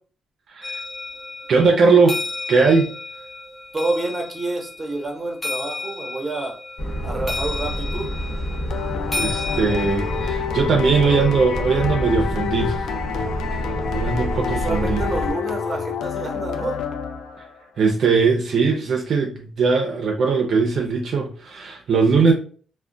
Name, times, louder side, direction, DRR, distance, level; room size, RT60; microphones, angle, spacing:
voice 1, 0.5-0.8 1.5-2.2 2.5-2.9 9.2-12.9 13.9-15.0 17.8-22.3, right 4 dB, 55° right, 0.5 m, -19 dB
sound 1, 0.6-10.3, left 3 dB, 15° left, 0.6 m, -33 dB
voice 2, 3.7-6.5 7.0-8.1 14.5-16.8, right 2 dB, 20° right, 0.9 m, -28 dB
sound 2, 6.8-15.3, equal, 50° left, 1.1 m, -28 dB
sound 3, 8.7-17.6, left 7 dB, 75° left, 0.4 m, -28 dB
2.3 x 2.1 x 3.7 m
cardioid pair, 130°, 0 cm